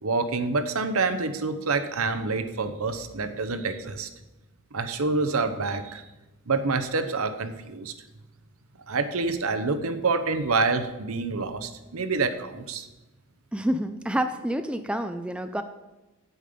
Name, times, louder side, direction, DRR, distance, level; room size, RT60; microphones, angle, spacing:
voice 1, 0.0-4.1 4.7-6.0 6.5-7.9 8.9-12.9, right 3 dB, 65° right, 9 dB, 0.8 m, -27 dB
voice 2, 13.5-15.6, right 1 dB, 5° right, 8 dB, 0.4 m, -28 dB
8.8 x 8.5 x 5.1 m, 1.0 s
head